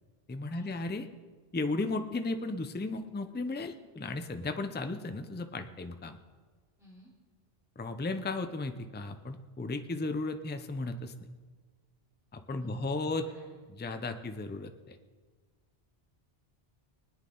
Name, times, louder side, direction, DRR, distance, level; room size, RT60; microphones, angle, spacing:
voice 1, 0.3-1.1 1.5-6.2 7.8-11.1 12.3-13.3 13.8-15.0, left 3 dB, 15° left, 8 dB, 0.5 m, -35 dB
voice 2, 6.8-7.1 12.6-13.6, equal, 5° right, -8 dB, 3.3 m, -56 dB
20.5 x 9.7 x 3.9 m, 1.4 s
omnidirectional pair, 1.1 m